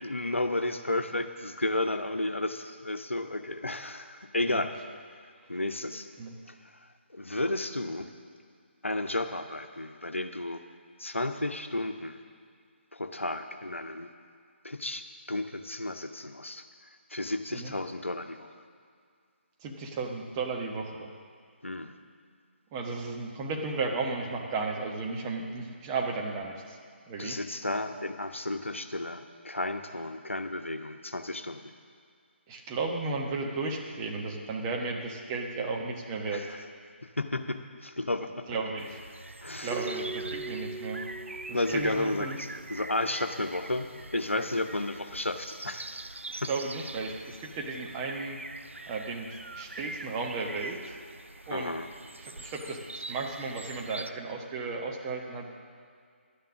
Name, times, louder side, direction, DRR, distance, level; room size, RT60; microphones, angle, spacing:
voice 1, 0.0-4.7 5.5-6.1 6.5-6.6 6.8-8.1 8.8-10.6 11.0-12.2 12.9-14.1 14.6-16.6 17.1-18.5 21.6-21.9 27.2-31.7 36.3-36.6 37.0-38.5 39.4-39.9 41.5-46.1 46.4-46.5 51.5-51.9, left 2 dB, 90° left, 7 dB, 0.9 m, -33 dB
voice 2, 19.6-21.1 22.7-26.8 27.1-27.4 32.5-36.5 38.5-39.0 39.6-41.0 41.5-42.4 46.3-48.4 48.9-51.0 51.5-51.7 52.2-55.6, right 3 dB, 20° right, 1 dB, 1.1 m, -34 dB
sound 1, 38.8-54.1, right 2 dB, 90° right, 0.4 m, -44 dB
Keyboard (musical), 39.7-42.5, right 4 dB, 5° right, 0.4 m, -41 dB
12.0 x 9.2 x 6.3 m, 2.2 s
figure-of-eight pair, 150°, 7 cm